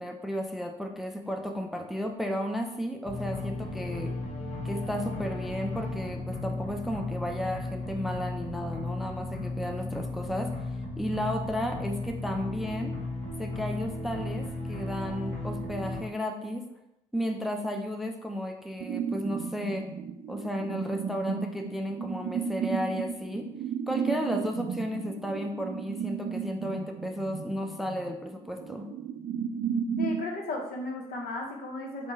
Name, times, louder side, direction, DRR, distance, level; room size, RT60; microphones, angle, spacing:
voice 1, 0.0-4.1 4.6-10.7 11.0-12.9 13.4-16.6 17.1-19.9 20.3-23.5 23.9-28.9, equal, ahead, 3 dB, 0.5 m, -33 dB
sound 1, 3.1-16.0, left 2 dB, 40° left, 1.2 m, -35 dB
sound 2, 18.8-30.2, right 7 dB, 55° right, 0.4 m, -34 dB
voice 2, 30.0-32.1, left 2 dB, 60° left, 0 dB, 1.0 m, -35 dB
3.5 x 2.4 x 4.0 m, 0.85 s
hypercardioid pair, 55°, 17 cm